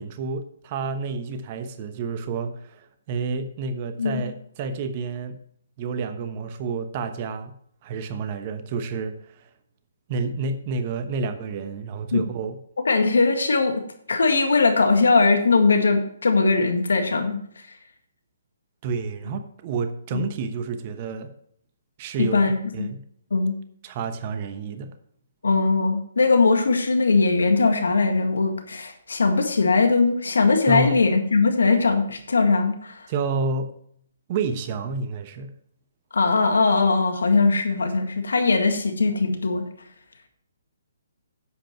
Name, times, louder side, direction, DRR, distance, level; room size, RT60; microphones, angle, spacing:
voice 1, 0.0-5.4 5.8-7.5 7.8-9.5 10.1-12.6 18.8-21.3 22.0-22.4 22.7-23.0 23.8-24.9 30.7-31.0 33.1-33.7 34.3-35.5, right 4 dB, 35° right, 9 dB, 1.1 m, -29 dB
voice 2, 12.9-13.8 14.1-17.4 20.1-20.2 22.2-22.9 23.3-23.6 25.4-33.0 36.1-39.6, left 4 dB, 75° left, 6 dB, 1.9 m, -20 dB
10.0 x 7.9 x 4.5 m, 0.65 s
figure-of-eight pair, 135°, 0 cm